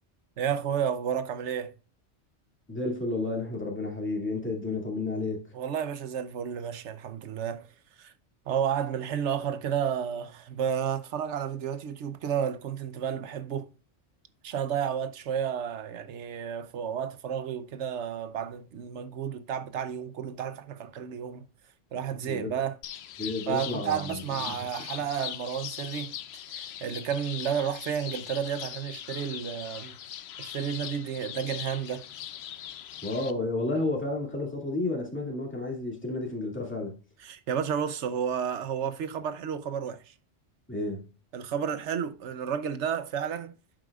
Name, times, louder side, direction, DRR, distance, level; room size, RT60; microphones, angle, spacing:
voice 1, 0.4-1.7 5.5-7.7 8.0-8.1 8.5-13.7 14.4-21.5 21.9-22.8 23.5-26.1 26.5-30.0 30.4-32.1 37.2-40.1 41.3-43.5, right 8 dB, 75° right, 1.1 m, -31 dB
voice 2, 2.7-5.5 22.2-22.5 23.2-24.5 33.0-36.9 40.7-41.1, left 2 dB, 10° left, 2.3 m, -31 dB
sound 1, 22.8-33.3, left 11 dB, 65° left, 0.8 m, -40 dB
9.7 x 7.6 x 2.4 m
omnidirectional pair, 1.2 m